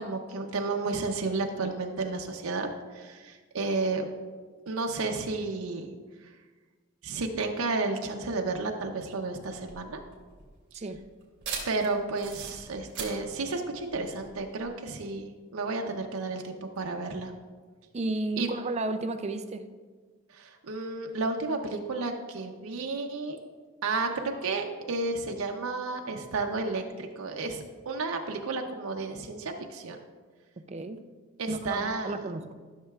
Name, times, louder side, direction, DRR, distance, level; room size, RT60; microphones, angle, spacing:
voice 1, 0.0-4.1 4.7-5.9 7.0-10.0 11.7-17.3 18.4-18.5 20.3-23.4 23.8-30.0 31.4-32.2, right 3 dB, 90° right, 3 dB, 0.7 m, -32 dB
sound 1, 9.5-14.7, right 5 dB, 55° right, 2.3 m, -41 dB
voice 2, 17.9-19.7 30.7-31.0 31.5-32.5, right 2 dB, 30° right, 9 dB, 0.5 m, -33 dB
13.0 x 6.6 x 2.4 m, 1.4 s
head